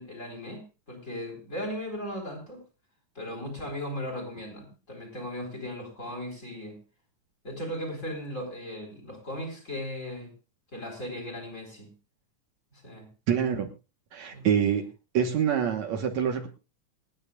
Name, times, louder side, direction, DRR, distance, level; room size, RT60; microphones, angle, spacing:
voice 1, 0.0-2.6 3.1-6.8 7.4-10.3 10.7-11.9 12.7-13.1 14.3-14.8, left 1 dB, 20° left, 1 dB, 4.5 m, -37 dB
voice 2, 13.3-13.7 14.1-14.9 15.1-16.5, right 8 dB, 65° right, 4 dB, 2.4 m, -26 dB
28.0 x 9.8 x 2.4 m, 0.29 s
omnidirectional pair, 3.7 m